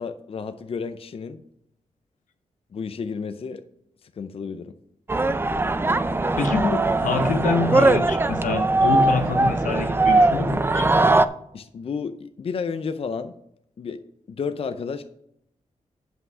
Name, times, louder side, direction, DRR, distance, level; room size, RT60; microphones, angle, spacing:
voice 1, 0.0-1.4 2.7-3.6 4.0-4.8 11.5-13.4 13.8-14.0 14.3-15.0, left 5 dB, 50° left, 10 dB, 0.5 m, -31 dB
sound 1, 5.1-11.3, right 2 dB, 15° right, 0.4 m, -20 dB
voice 2, 6.4-10.9, left 4 dB, 90° left, 8 dB, 1.0 m, -26 dB
7.7 x 5.6 x 6.0 m, 0.74 s
cardioid pair, 95°, 13 cm